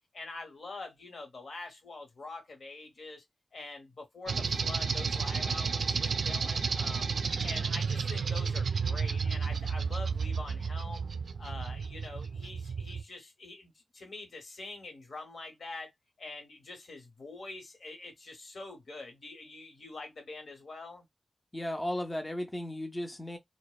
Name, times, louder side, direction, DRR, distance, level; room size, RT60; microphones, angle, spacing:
voice 1, 0.1-3.2 3.5-7.1 7.4-11.1 11.4-15.9 16.2-21.1, left 3 dB, 75° left, 1.0 m, -45 dB
sound 1, 4.3-13.0, right 5 dB, 90° right, 0.3 m, -32 dB
voice 2, 21.5-23.4, left 1 dB, 15° left, 0.4 m, -35 dB
2.7 x 2.0 x 2.2 m
wide cardioid pair, 115°, 0 cm